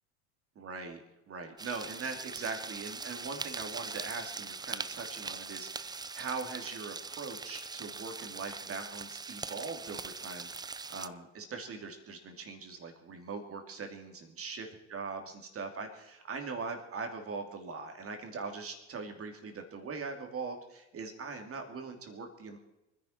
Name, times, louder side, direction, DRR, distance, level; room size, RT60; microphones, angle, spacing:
voice 1, 0.5-1.0 1.3-22.6, right 4 dB, 35° right, 4 dB, 2.8 m, -41 dB
sound 1, 1.6-11.1, right 4 dB, 10° right, 0.5 m, -42 dB
25.0 x 10.5 x 4.5 m, 0.95 s
hypercardioid pair, 75°, 37 cm